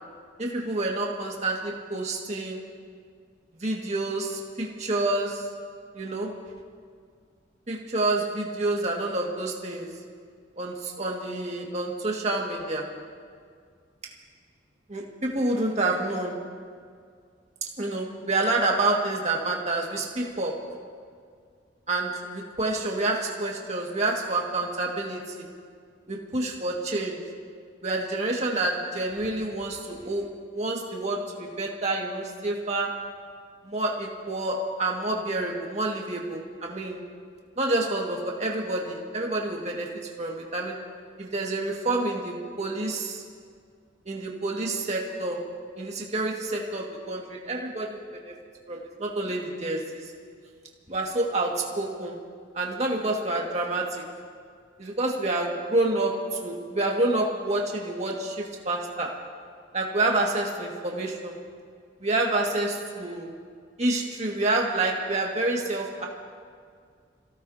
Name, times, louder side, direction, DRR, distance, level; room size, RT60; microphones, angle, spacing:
voice 1, 0.4-2.6 3.6-5.5 5.9-6.4 7.7-9.9 10.6-12.9 14.9-16.4 17.8-20.6 21.9-25.5 26.1-27.2 27.8-30.3 30.5-33.0 33.6-37.0 37.6-39.9 40.2-40.8 41.2-43.2 44.1-45.4 45.8-48.0 48.3-48.4 48.7-50.0 50.9-52.2 52.5-54.1 54.8-59.2 59.7-61.4 62.0-63.3 63.8-66.1, right 2 dB, 35° right, -1 dB, 2.0 m, -28 dB
28.0 x 16.5 x 2.9 m, 2.1 s
head